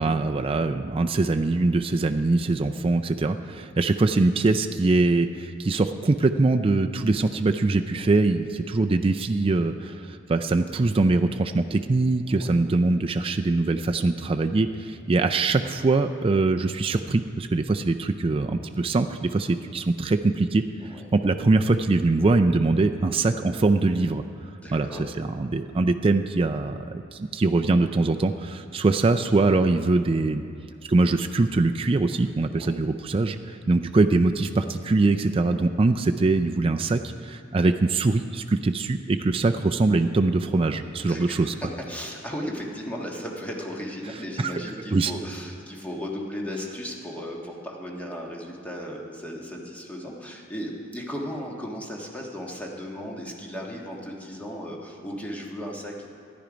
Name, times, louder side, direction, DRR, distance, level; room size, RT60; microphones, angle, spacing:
voice 1, 0.0-24.2 24.7-30.4 30.9-41.5 44.4-44.5 44.9-45.1, right 3 dB, 30° right, 6 dB, 0.4 m, -23 dB
voice 2, 20.8-21.1 24.6-25.1 32.4-32.8 41.1-56.1, equal, 5° left, -2 dB, 1.5 m, -36 dB
13.0 x 10.5 x 5.1 m, 2.6 s
head